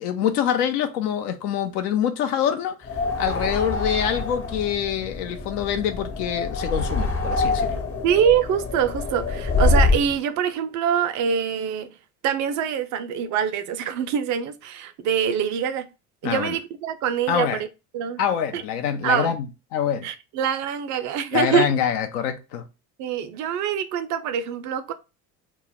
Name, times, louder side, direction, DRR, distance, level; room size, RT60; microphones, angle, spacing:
voice 1, 0.0-2.8 3.2-7.8 16.2-16.6 17.3-17.6 18.2-20.1 21.3-22.6, left 9 dB, 70° left, 0.6 m, -25 dB
sound 1, 2.8-10.1, left 3 dB, 30° left, 0.8 m, -25 dB
voice 2, 8.0-11.9 12.2-15.9 16.2-17.7 17.9-18.2 18.5-18.6 19.0-19.3 20.0-21.7 23.0-24.9, right 8 dB, 40° right, 0.4 m, -24 dB
2.3 x 2.0 x 3.4 m
hypercardioid pair, 70°, 48 cm